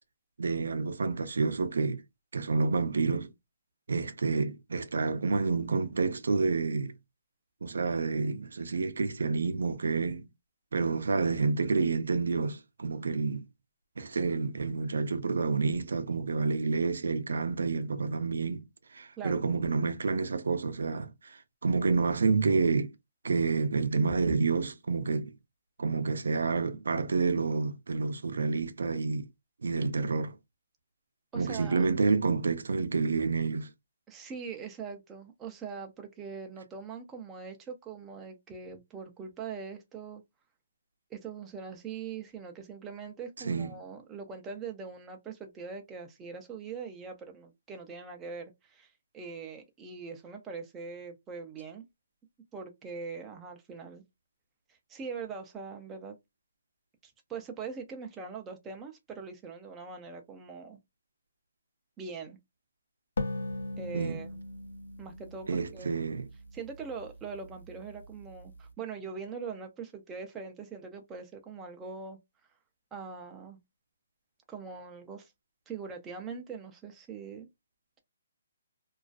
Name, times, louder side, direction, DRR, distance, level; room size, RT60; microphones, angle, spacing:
voice 1, 0.4-2.0 2.3-3.3 3.9-6.9 7.6-10.3 10.7-13.5 14.0-18.6 18.9-22.9 23.2-25.3 25.8-29.2 29.6-30.3 31.3-33.7 43.4-43.8 63.9-64.2 65.5-66.3, right 4 dB, 85° right, 0.4 m, -29 dB
voice 2, 31.3-31.8 34.1-40.2 41.1-51.8 52.5-54.0 54.7-56.2 57.0-60.8 62.0-62.4 63.8-64.4 65.0-66.0 66.5-72.2 72.9-73.6 74.5-75.3 75.7-77.5, right 5 dB, 10° right, 0.4 m, -42 dB
sound 1, 63.2-66.6, left 2 dB, 90° left, 0.7 m, -38 dB
2.3 x 2.3 x 2.3 m
hypercardioid pair, 170°, 0 cm